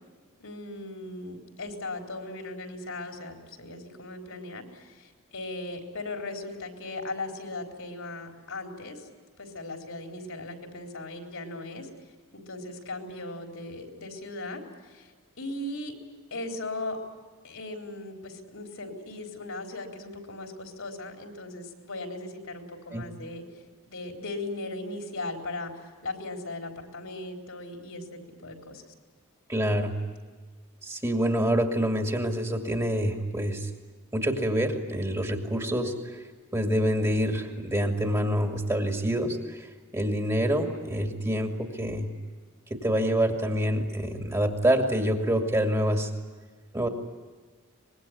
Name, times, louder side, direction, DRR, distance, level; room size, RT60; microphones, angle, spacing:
voice 1, 0.4-9.1 9.4-11.9 12.3-15.1 15.4-16.0 16.3-17.0 17.4-23.4 23.9-28.8, left 2 dB, 70° left, 3 dB, 4.2 m, -38 dB
voice 2, 29.5-30.0 30.8-33.7 34.1-35.9 36.5-39.7 39.9-42.1 42.7-46.1 46.7-46.9, equal, 15° right, 4 dB, 2.3 m, -26 dB
25.0 x 21.5 x 9.7 m, 1.5 s
head